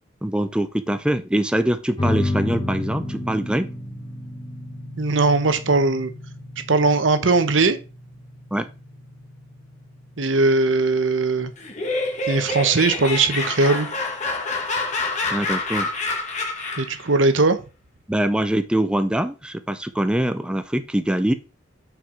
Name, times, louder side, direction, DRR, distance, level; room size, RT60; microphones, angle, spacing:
voice 1, 0.2-3.7 8.5-8.7 15.3-15.9 18.1-21.3, right 1 dB, 5° right, 9 dB, 0.4 m, -23 dB
sound 1, 2.0-13.0, left 1 dB, 25° left, 1.2 m, -32 dB
voice 2, 5.0-6.1 6.7-7.8 10.2-11.5 12.3-13.9 16.8-17.6, right 3 dB, 80° right, 10 dB, 0.9 m, -19 dB
Laughter, 11.6-17.0, left 3 dB, 40° left, 1.8 m, -27 dB
6.1 x 4.8 x 4.8 m, 0.32 s
head